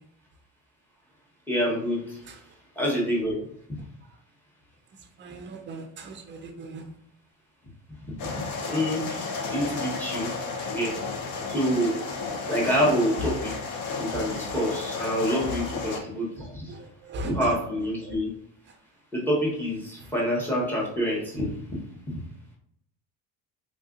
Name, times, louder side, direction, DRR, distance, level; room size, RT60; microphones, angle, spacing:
voice 1, 1.5-2.2 2.8-3.4 8.0-9.2 9.5-10.3 10.7-10.9 11.5-12.0 12.5-13.5 14.0-16.7 17.2-18.3 19.1-21.8, equal, 5° left, -4 dB, 1.1 m, -27 dB
voice 2, 5.2-6.8 15.4-15.6 16.7-17.4, right 1 dB, 30° right, 5 dB, 0.5 m, -39 dB
sound 1, 8.2-16.0, left 4 dB, 50° left, 0.7 m, -33 dB
3.6 x 2.6 x 2.5 m, 0.72 s
cardioid pair, 130°, 40 cm